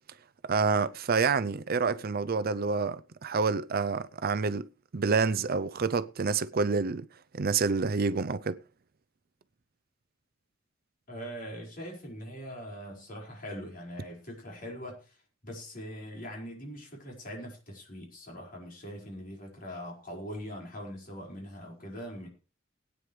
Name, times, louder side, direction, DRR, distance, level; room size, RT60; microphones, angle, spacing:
voice 1, 0.4-7.1 7.3-8.6, right 4 dB, 50° right, 0.6 m, -28 dB
voice 2, 11.1-22.3, equal, 45° left, 5.1 m, -42 dB
19.5 x 9.4 x 3.3 m
head